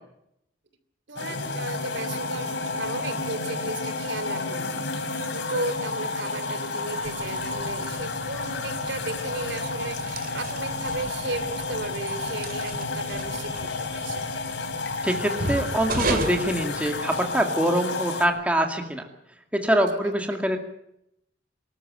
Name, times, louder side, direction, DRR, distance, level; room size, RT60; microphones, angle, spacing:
voice 1, 1.1-14.3, right 2 dB, 70° right, 11 dB, 3.0 m, -35 dB
sound 1, 1.2-18.3, left 3 dB, 75° left, 3.2 m, -31 dB
sound 2, 7.0-17.4, right 2 dB, 50° right, 2.3 m, -35 dB
voice 2, 15.0-19.1 19.5-20.6, right 1 dB, 5° right, 4 dB, 2.3 m, -24 dB
25.0 x 13.5 x 9.1 m, 0.78 s
head